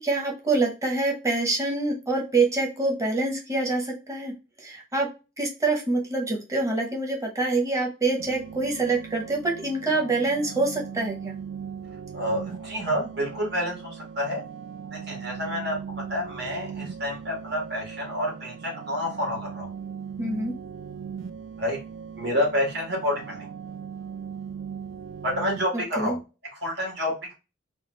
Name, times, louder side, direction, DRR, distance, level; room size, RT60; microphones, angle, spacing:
voice 1, 0.0-5.1 5.4-11.4 20.2-20.6 25.7-26.2, right 3 dB, 15° right, 0 dB, 0.8 m, -26 dB
sound 1, 8.2-25.6, right 7 dB, 70° right, 0.4 m, -39 dB
voice 2, 12.1-14.4 14.9-19.7 21.6-21.8 22.2-23.5 25.2-26.2 26.6-27.3, left 1 dB, 55° right, -2 dB, 1.6 m, -29 dB
3.5 x 2.4 x 3.0 m, 0.30 s
head